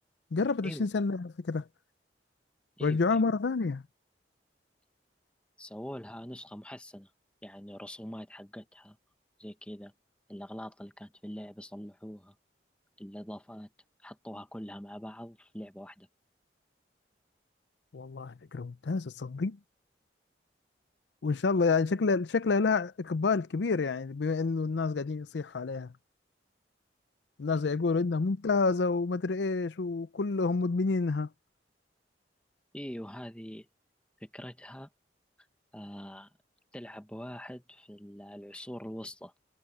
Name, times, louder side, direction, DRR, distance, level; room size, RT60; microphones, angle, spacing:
voice 1, 0.3-1.6 2.8-3.8 17.9-19.6 21.2-25.9 27.4-31.3, left 4 dB, 75° left, 0.5 m, -28 dB
voice 2, 2.8-3.2 5.6-7.1 7.4-9.0 9.4-9.9 10.3-12.3 13.0-13.7 14.0-16.1 32.7-33.7 34.2-34.9 35.7-36.3 36.7-39.3, equal, 5° left, 1.2 m, -43 dB
head